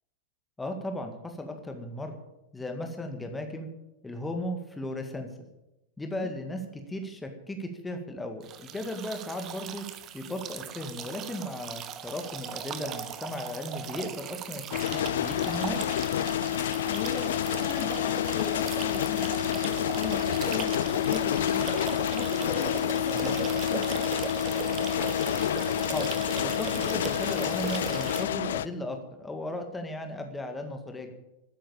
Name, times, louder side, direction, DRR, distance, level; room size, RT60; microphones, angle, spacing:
voice 1, 0.6-2.2 2.5-3.7 4.0-5.3 6.0-9.8 10.1-15.8 23.1-23.4 25.9-31.2, left 1 dB, 10° left, 5 dB, 1.9 m, -36 dB
sound 1, 8.4-28.2, right 8 dB, 30° right, 1.3 m, -38 dB
sound 2, 14.7-28.7, left 11 dB, 60° left, 0.5 m, -28 dB
voice 2, 16.5-24.1, left 6 dB, 45° left, 0 dB, 2.8 m, -38 dB
13.0 x 10.0 x 8.7 m, 0.93 s
figure-of-eight pair, 90°, 0 cm